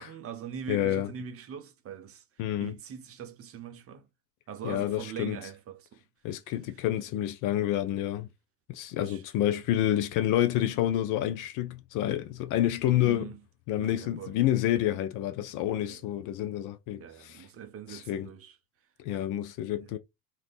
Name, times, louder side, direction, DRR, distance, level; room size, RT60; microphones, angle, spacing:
voice 1, 0.0-2.2 2.6-4.1 4.5-6.0 9.0-9.2 12.9-13.4 13.8-14.4 15.7-16.1 17.0-18.5 19.8-20.0, right 8 dB, 30° right, 0.5 m, -42 dB
voice 2, 0.7-1.1 2.4-2.8 4.6-5.4 6.2-8.3 8.7-13.3 13.7-17.5 17.9-18.3 19.0-20.0, left 12 dB, 40° left, 0.4 m, -28 dB
2.8 x 2.4 x 3.4 m
hypercardioid pair, 70°, 49 cm